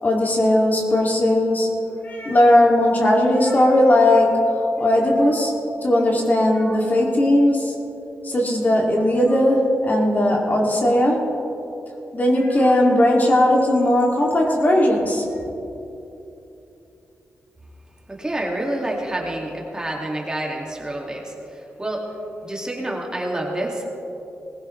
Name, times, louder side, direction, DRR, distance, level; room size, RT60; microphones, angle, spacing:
voice 1, 0.0-4.4 4.8-5.5 5.8-7.7 8.2-11.2 12.1-15.2, left 1 dB, 35° left, -1 dB, 2.5 m, -18 dB
voice 2, 18.1-22.1 22.4-23.8, right 1 dB, 15° right, -2 dB, 2.3 m, -28 dB
20.0 x 15.5 x 3.3 m, 2.9 s
cardioid pair, 85°, 5 cm